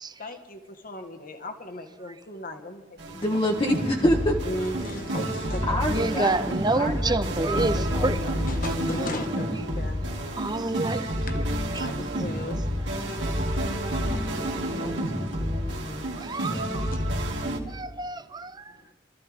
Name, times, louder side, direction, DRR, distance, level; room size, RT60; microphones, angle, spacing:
voice 1, 0.2-3.0 3.3-3.4 4.4-6.0 8.5-10.5 11.3-11.4 11.7-12.6 13.0-13.2 14.1-14.3 14.8-15.2 16.5-17.0 18.8-18.9, left 1 dB, 50° left, 1.6 m, -37 dB
sound 1, 3.0-17.6, equal, 70° right, 2.7 m, -29 dB
voice 2, 3.1-4.3 5.7-7.1 7.5-9.0 14.6-16.1 16.4-16.8, left 1 dB, 25° left, 1.3 m, -29 dB
voice 3, 5.9-8.2 10.4-11.1 11.4-11.5 11.8-11.9 16.2-16.9 17.7-18.9, right 2 dB, 20° right, 0.7 m, -28 dB
25.0 x 14.0 x 3.6 m
head